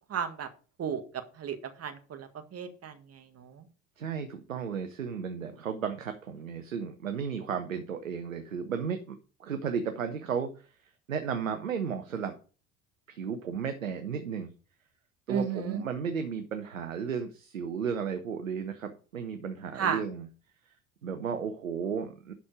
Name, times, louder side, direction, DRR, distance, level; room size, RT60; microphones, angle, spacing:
voice 1, 0.1-0.5 0.8-2.9 3.4-3.6 15.3-15.8 19.8-20.0, right 7 dB, 40° right, 7 dB, 1.7 m, -33 dB
voice 2, 4.0-10.5 11.1-12.3 13.1-14.5 15.3-20.3 21.0-22.3, right 6 dB, 90° right, 8 dB, 0.8 m, -34 dB
11.5 x 4.3 x 4.8 m, 0.38 s
hypercardioid pair, 65°, 39 cm